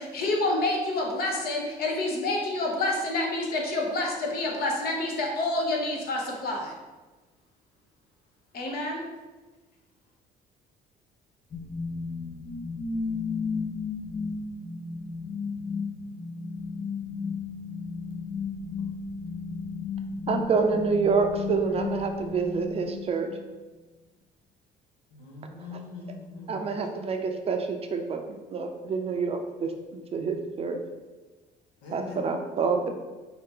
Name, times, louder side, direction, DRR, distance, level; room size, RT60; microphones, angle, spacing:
voice 1, 0.0-6.7 8.5-9.0, left 2 dB, 65° left, 0 dB, 1.0 m, -28 dB
sound 1, 11.5-23.5, left 4 dB, 30° left, 0.4 m, -34 dB
voice 2, 20.3-23.3 25.7-25.8 26.5-29.7 30.1-30.8 31.9-32.9, right 5 dB, 35° right, 5 dB, 0.4 m, -27 dB
voice 3, 25.1-26.8 31.8-32.3, left 3 dB, 90° left, -1 dB, 1.1 m, -42 dB
4.3 x 2.8 x 3.7 m, 1.2 s
cardioid pair, 110°, 17 cm